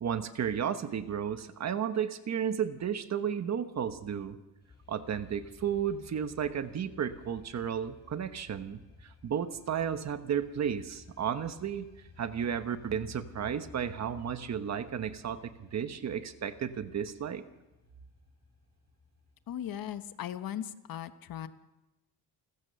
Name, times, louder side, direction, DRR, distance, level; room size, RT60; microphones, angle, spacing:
voice 1, 0.0-4.4 4.9-11.9 12.2-17.4, right 8 dB, 40° right, 10 dB, 1.2 m, -33 dB
sound 1, 4.6-20.3, left 5 dB, 25° left, 8.0 m, -57 dB
voice 2, 19.5-21.5, left 10 dB, 55° left, 11 dB, 1.2 m, -38 dB
29.0 x 15.0 x 6.9 m, 1.0 s
cardioid pair, 165°, 41 cm